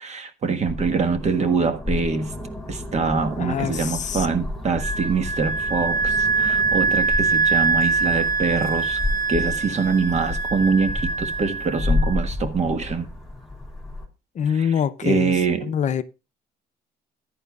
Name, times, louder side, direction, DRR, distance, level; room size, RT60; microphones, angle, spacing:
voice 1, 0.0-2.3 2.7-9.0 9.3-13.1 14.5-14.7 15.0-15.7, right 5 dB, 40° right, 1.6 m, -24 dB
sound 1, 0.7-14.1, left 2 dB, ahead, 4.3 m, -31 dB
voice 2, 3.4-4.3 14.3-15.4 15.6-16.0, left 8 dB, 45° left, 0.7 m, -25 dB
Wind instrument woodwind instrument, 4.8-12.2, right 4 dB, 65° right, 1.9 m, -24 dB
14.5 x 10.0 x 2.4 m
cardioid pair, 110°, 17 cm